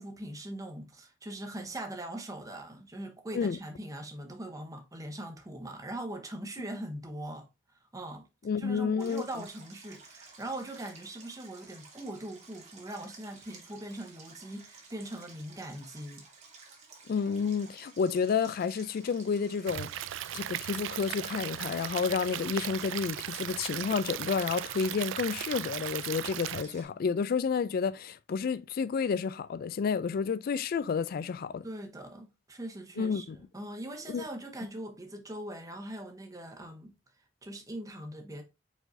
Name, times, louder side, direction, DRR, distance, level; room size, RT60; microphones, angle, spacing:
voice 1, 0.0-7.5 7.9-8.3 8.6-16.3 31.6-33.3 33.5-36.9 37.4-38.4, right 1 dB, 20° right, 0.8 m, -41 dB
voice 2, 8.4-9.2 17.1-20.1 20.3-31.6 33.0-33.4 34.1-34.2, left 6 dB, 50° left, 0.3 m, -30 dB
Stream, 9.0-26.8, right 4 dB, 40° right, 1.2 m, -53 dB
Stream / Liquid, 19.7-26.6, right 12 dB, 85° right, 0.3 m, -37 dB
4.8 x 4.0 x 2.5 m
head